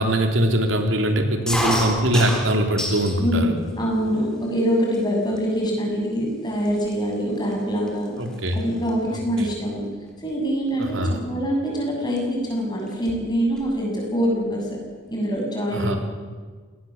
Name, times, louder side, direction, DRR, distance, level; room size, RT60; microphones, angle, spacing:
voice 1, 0.0-3.5 8.2-8.6 9.1-9.5 10.8-11.2 15.7-16.0, right 1 dB, 90° right, 4 dB, 3.4 m, -22 dB
sound 1, 1.5-3.2 3.6-4.3 4.9-5.0 5.3-5.7 6.3-6.4 6.6-8.9 9.2-9.5 10.8-11.1 12.2-12.3 12.5-12.6 12.9-13.8, equal, 5° left, 3.8 m, -29 dB
voice 2, 3.2-8.2 8.5-9.8 10.2-14.7 15.1-16.0, equal, 20° left, -1 dB, 7.3 m, -24 dB
26.0 x 19.0 x 7.3 m, 1.5 s
head